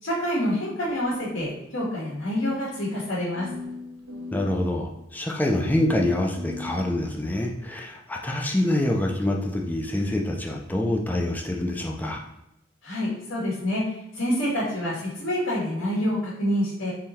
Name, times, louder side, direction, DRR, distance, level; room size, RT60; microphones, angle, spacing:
voice 1, 0.0-3.5 12.8-13.8 14.1-16.9, equal, 85° left, -6 dB, 1.6 m, -27 dB
sound 1, 0.8-2.1 2.4-2.5 3.3-4.6 5.6-7.6, left 3 dB, 85° right, 1.0 m, -40 dB
voice 2, 4.3-12.2, left 1 dB, 10° left, 0 dB, 0.4 m, -26 dB
3.8 x 3.1 x 4.3 m, 0.84 s
head